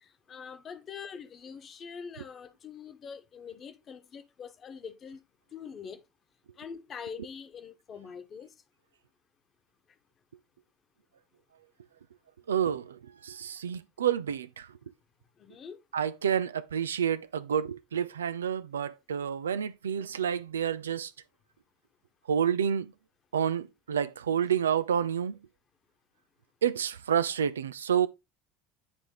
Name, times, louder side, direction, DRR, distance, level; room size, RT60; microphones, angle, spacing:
voice 1, 0.0-5.2 5.5-6.0 6.6-8.5 15.4-15.8, left 6 dB, 40° left, 1.3 m, -44 dB
voice 2, 12.5-14.7 15.9-21.1 22.3-22.9 23.3-25.3 26.6-28.1, right 8 dB, 85° right, 0.4 m, -29 dB
9.8 x 3.4 x 3.9 m
hypercardioid pair, 70°, 0 cm